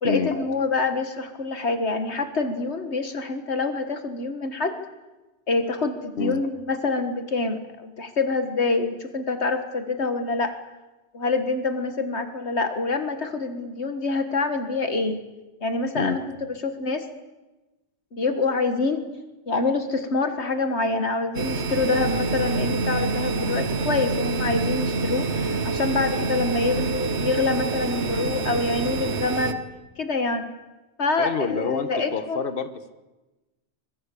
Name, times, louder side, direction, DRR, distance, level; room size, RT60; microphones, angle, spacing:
voice 1, 0.0-4.8 5.5-10.5 11.1-15.2 15.6-16.2 16.6-17.1 18.1-19.1 19.5-29.6 30.0-30.5 31.0-32.4, left 3 dB, 75° left, 8 dB, 2.0 m, -26 dB
sound 1, 21.3-29.5, right 3 dB, 75° right, 1.7 m, -26 dB
voice 2, 31.2-32.9, left 5 dB, 55° left, 10 dB, 1.6 m, -27 dB
25.0 x 22.0 x 8.6 m, 1.1 s
omnidirectional pair, 1.1 m